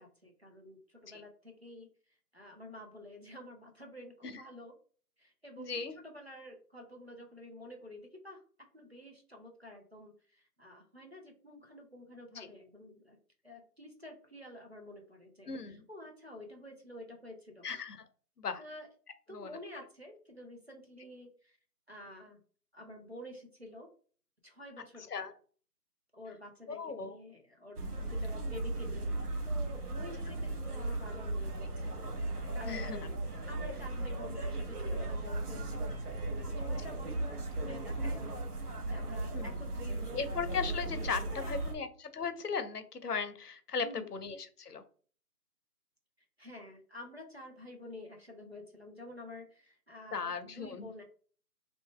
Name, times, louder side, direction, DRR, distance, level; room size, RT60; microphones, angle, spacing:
voice 1, 0.0-1.9 2.3-4.7 5.2-8.4 8.7-13.2 13.4-17.7 18.6-18.9 19.3-21.6 21.9-22.4 22.7-23.9 24.4-25.0 26.1-29.2 29.5-32.0 32.5-33.2 33.5-36.0 36.3-38.4 38.9-40.4 41.3-41.6 43.8-44.2 46.4-51.0, left 1 dB, 40° right, 0 dB, 0.6 m, -49 dB
voice 2, 5.6-6.0 12.3-12.5 15.5-15.8 17.6-18.1 18.4-18.6 19.3-19.6 25.1-25.3 26.7-27.2 28.3-28.5 32.6-33.1 39.3-39.5 40.1-44.8 50.1-50.9, left 5 dB, 70° left, 10 dB, 0.7 m, -37 dB
sound 1, 27.8-41.7, right 2 dB, 70° right, 0.9 m, -36 dB
2.5 x 2.2 x 3.6 m, 0.43 s
figure-of-eight pair, 175°, 48 cm